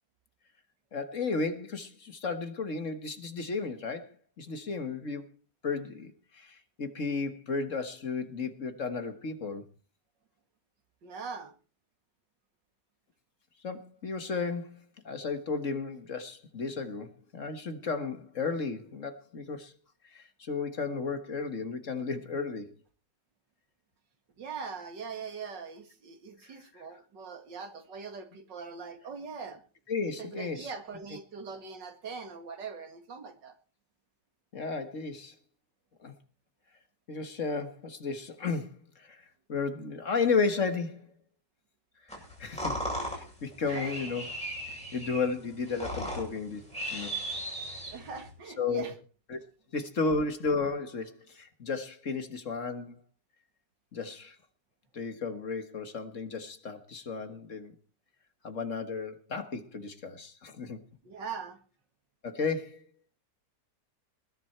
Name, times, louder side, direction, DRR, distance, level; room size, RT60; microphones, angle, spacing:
voice 1, 0.9-5.3 5.6-9.6 13.6-19.7 20.1-22.7 26.4-26.8 29.9-30.7 34.5-35.3 36.0-36.1 37.1-39.2 39.5-41.1 42.4-42.7 43.1-44.3 44.9-47.2 48.6-48.9 49.3-49.4 49.7-53.0 53.9-54.4 54.9-57.7 58.4-60.8 62.2-62.8, left 4 dB, 45° left, 1.8 m, -33 dB
voice 2, 11.0-11.5 24.4-29.6 30.2-33.6 43.6-43.9 47.9-48.9 61.0-61.6, right 5 dB, 90° right, 2.7 m, -41 dB
sound 1, 42.1-48.3, equal, 5° left, 7.9 m, -37 dB
20.0 x 11.0 x 4.5 m
omnidirectional pair, 1.9 m